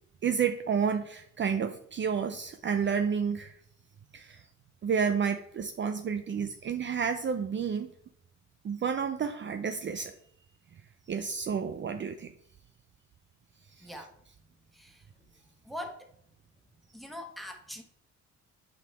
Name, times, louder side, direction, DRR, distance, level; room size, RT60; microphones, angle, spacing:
voice 1, 0.2-3.6 4.1-4.4 4.8-7.9 8.6-10.1 11.1-12.3 13.8-14.0, right 6 dB, 40° right, 8 dB, 0.6 m, -30 dB
voice 2, 13.8-14.1 14.7-15.1 15.6-16.1 16.9-17.8, left 1 dB, ahead, 3 dB, 1.5 m, -42 dB
8.7 x 5.2 x 3.4 m, 0.68 s
cardioid pair, 90°, 30 cm